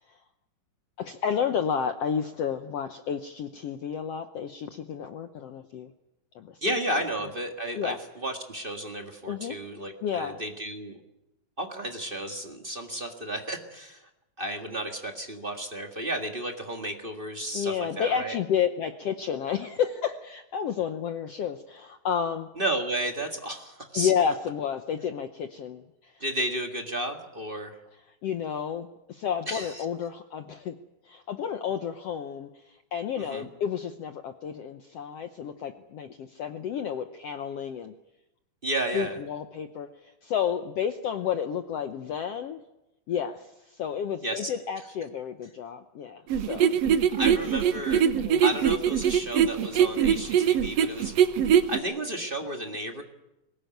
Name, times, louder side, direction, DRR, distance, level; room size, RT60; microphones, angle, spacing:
voice 1, 1.0-5.9 6.3-6.6 7.8-8.0 9.3-9.6 10.0-10.4 17.5-22.5 23.9-26.2 28.1-30.8 31.0-37.9 38.9-42.6 43.1-46.2 46.5-46.7 48.2-48.4, left 8 dB, 75° left, 8 dB, 1.4 m, -31 dB
voice 2, 6.6-11.0 11.6-14.1 14.4-18.4 22.6-24.1 26.2-27.8 29.5-29.8 33.2-33.5 38.6-39.2 44.2-44.5 47.1-48.1 48.4-51.1 51.7-53.0, right 1 dB, 30° right, 3 dB, 0.9 m, -32 dB
sound 1, 46.3-51.8, right 9 dB, 65° right, 1.8 m, -22 dB
22.0 x 19.5 x 9.3 m, 0.92 s
omnidirectional pair, 4.0 m